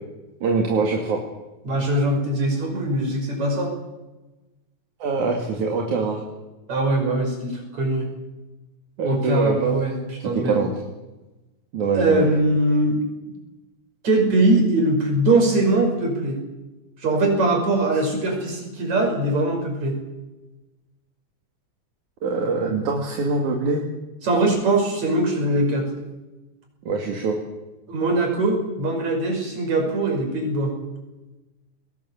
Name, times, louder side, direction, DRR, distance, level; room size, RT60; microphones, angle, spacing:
voice 1, 0.4-1.2 5.0-6.2 9.0-9.6 10.3-10.7 11.7-12.3 22.2-23.8 26.9-27.4, right 4 dB, 85° right, 1 dB, 3.8 m, -23 dB
voice 2, 1.7-3.7 6.7-8.1 9.1-10.6 11.9-13.0 14.0-16.4 17.0-20.0 24.2-25.9 27.9-30.8, right 2 dB, 70° right, 3 dB, 6.9 m, -21 dB
21.0 x 18.5 x 8.3 m, 1.1 s
omnidirectional pair, 3.3 m